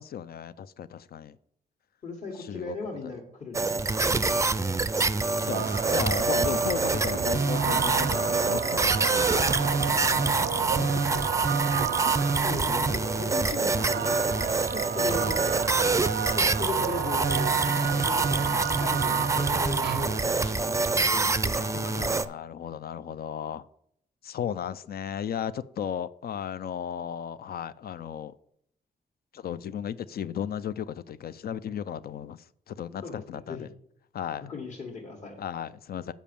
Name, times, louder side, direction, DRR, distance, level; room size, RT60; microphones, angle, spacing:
voice 1, 0.0-1.4 2.4-2.8 5.4-11.2 21.6-23.7 24.2-28.3 29.3-33.7 34.1-34.5 35.4-36.1, left 8 dB, 65° left, 15 dB, 0.4 m, -35 dB
voice 2, 2.0-3.8 4.1-4.8 12.4-16.1 16.3-17.5 17.8-22.1 33.0-33.7 34.4-35.3, left 4 dB, 45° left, -3 dB, 1.6 m, -38 dB
sound 1, 3.5-22.3, right 3 dB, 20° right, 0.4 m, -26 dB
sound 2, 5.5-20.5, right 9 dB, 80° right, 0.5 m, -33 dB
7.3 x 5.1 x 6.9 m, 0.70 s
cardioid pair, 100°, 17 cm